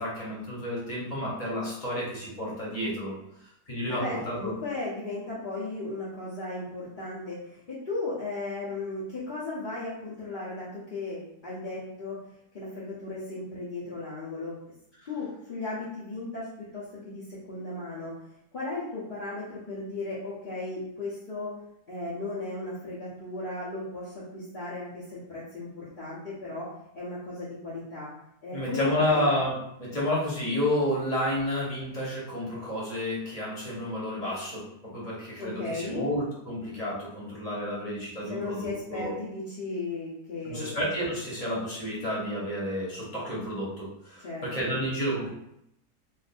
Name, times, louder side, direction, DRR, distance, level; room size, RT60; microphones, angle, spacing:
voice 1, 0.0-3.1 3.7-4.5 28.5-39.1 40.4-45.3, left 1 dB, 25° left, -6 dB, 1.1 m, -30 dB
voice 2, 3.9-12.2 12.5-14.6 15.0-18.2 18.5-21.5 21.9-28.1 28.4-29.4 35.4-36.1 38.3-40.8 44.2-44.8, left 2 dB, 40° left, -9 dB, 0.7 m, -36 dB
2.6 x 2.5 x 4.1 m, 0.79 s
omnidirectional pair, 1.7 m